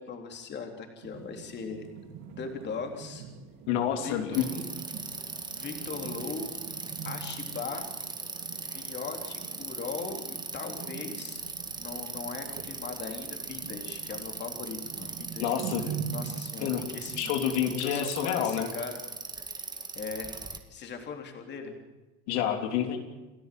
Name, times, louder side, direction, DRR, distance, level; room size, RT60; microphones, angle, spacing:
voice 1, 0.0-1.9 2.3-3.3 4.0-4.6 5.5-6.5 7.0-7.9 8.6-11.4 11.8-15.5 15.8-17.3 17.8-19.0 19.9-21.7, left 5 dB, 30° left, 4 dB, 3.5 m, -39 dB
sound 1, 1.0-17.8, right 8 dB, 55° right, 3.3 m, -44 dB
voice 2, 3.7-4.5 15.4-15.9 16.6-16.8 17.2-18.7 22.3-23.0, left 9 dB, 80° left, 5 dB, 3.3 m, -28 dB
Bicycle, 4.3-20.6, right 3 dB, 10° right, 1.9 m, -39 dB
29.0 x 13.5 x 7.7 m, 1.1 s
cardioid pair, 150°, 34 cm